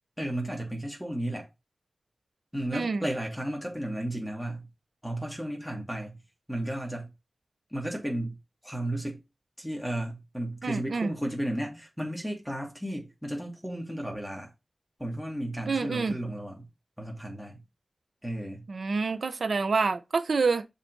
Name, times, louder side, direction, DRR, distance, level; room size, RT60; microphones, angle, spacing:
voice 1, 0.2-1.5 2.5-4.7 5.0-6.2 6.5-7.1 7.7-8.4 8.6-9.2 9.6-14.5 15.0-16.7 17.0-17.6 18.2-18.6, right 1 dB, ahead, 2.7 m, -33 dB
voice 2, 2.7-3.1 10.6-11.1 15.7-16.2 18.7-20.7, right 4 dB, 90° right, 0.8 m, -27 dB
7.5 x 4.3 x 5.4 m
wide cardioid pair, 60°, 0 cm